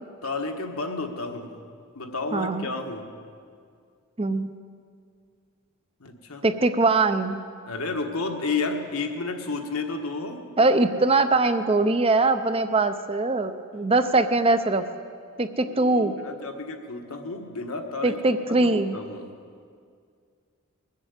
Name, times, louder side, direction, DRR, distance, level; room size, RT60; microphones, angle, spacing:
voice 1, 0.2-1.5 1.9-3.1 6.0-6.4 7.7-10.4 15.6-18.2 18.5-19.3, left 3 dB, 75° left, 4 dB, 1.4 m, -31 dB
voice 2, 2.3-2.7 4.2-4.5 6.4-7.4 10.6-14.8 15.4-16.1 18.0-19.0, right 3 dB, 25° right, 10 dB, 0.6 m, -22 dB
21.0 x 7.5 x 8.2 m, 2.2 s
head